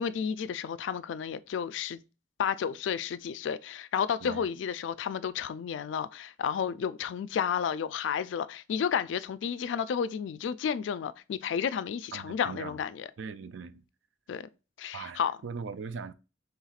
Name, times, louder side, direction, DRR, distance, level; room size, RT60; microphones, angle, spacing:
voice 1, 0.0-2.0 2.4-13.1 14.3-14.5 14.8-15.4, left 7 dB, 85° left, 0.3 m, -32 dB
voice 2, 12.1-12.8 13.2-13.8 14.9-16.1, right 5 dB, 85° right, 0.4 m, -40 dB
5.7 x 3.4 x 2.4 m
head